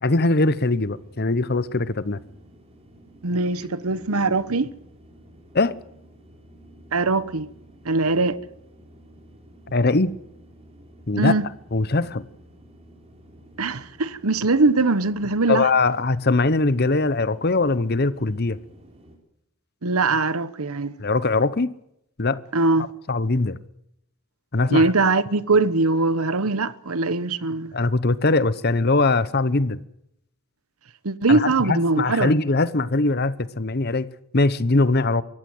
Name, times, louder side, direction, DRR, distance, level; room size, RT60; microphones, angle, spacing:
voice 1, 0.0-2.2 5.5-5.7 9.7-10.1 11.1-11.3 11.7-12.2 15.5-18.6 21.0-21.7 22.2-22.4 23.1-23.6 24.5-24.9 27.7-29.8 31.3-34.1 34.3-35.2, left 3 dB, 45° left, 1.0 m, -21 dB
sound 1, 0.8-19.2, right 1 dB, 30° right, 4.6 m, -51 dB
voice 2, 3.2-4.7 6.9-7.5 7.8-8.4 11.2-11.5 13.6-15.7 19.8-20.9 22.5-22.9 24.7-27.7 31.0-32.3, right 3 dB, 85° right, 1.1 m, -21 dB
23.5 x 15.5 x 7.9 m
head